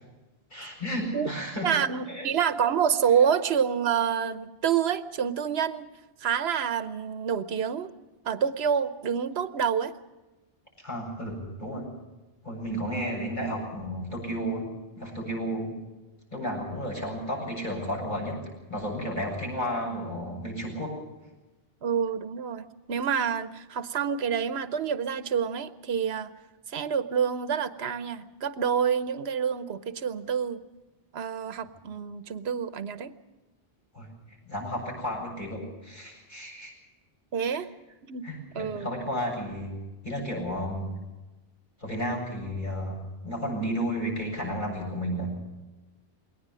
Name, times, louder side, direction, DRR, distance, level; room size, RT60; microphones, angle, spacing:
voice 1, 0.5-1.7 2.1-2.3 10.8-11.9 12.4-14.7 15.0-15.7 16.3-18.4 18.7-21.0 33.9-36.7 37.4-37.5 38.2-39.7 40.0-40.9 41.8-43.0 43.2-45.3, equal, 50° left, -1 dB, 8.2 m, -32 dB
voice 2, 1.6-5.9 6.2-7.9 8.2-9.9 21.8-26.3 26.7-30.6 31.1-33.1 37.3-37.7 38.1-38.2 38.5-38.9, right 7 dB, 80° right, 12 dB, 1.1 m, -27 dB
21.5 x 18.5 x 7.6 m, 1.1 s
omnidirectional pair, 1.0 m